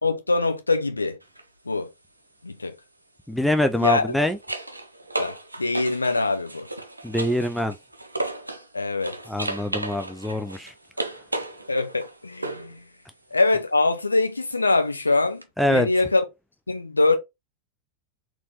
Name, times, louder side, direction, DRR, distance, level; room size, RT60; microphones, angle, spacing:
voice 1, 0.0-1.2 1.7-1.9 2.4-2.8 3.8-4.0 5.2-6.7 8.7-9.2 11.7-12.8 13.3-16.2 16.7-17.2, left 3 dB, 80° left, 0.7 m, -23 dB
sound 1, 1.2-1.4 3.7-8.7 9.0-12.8 15.4-15.5, right 2 dB, 85° right, 0.6 m, -34 dB
voice 2, 3.3-4.4 7.0-7.7 9.3-10.7 15.6-15.9, left 1 dB, ahead, 0.4 m, -24 dB
4.2 x 3.0 x 2.9 m
figure-of-eight pair, 90°, 0 cm